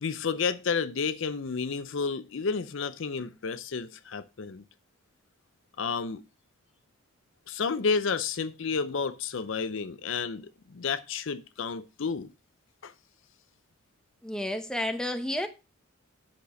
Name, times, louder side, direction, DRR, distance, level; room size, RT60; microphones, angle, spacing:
voice 1, 0.0-4.6 5.8-6.2 7.5-12.3 12.8-12.9, left 5 dB, 60° left, 0.5 m, -31 dB
voice 2, 14.2-15.5, left 1 dB, 5° left, 0.8 m, -31 dB
8.4 x 6.0 x 4.8 m
head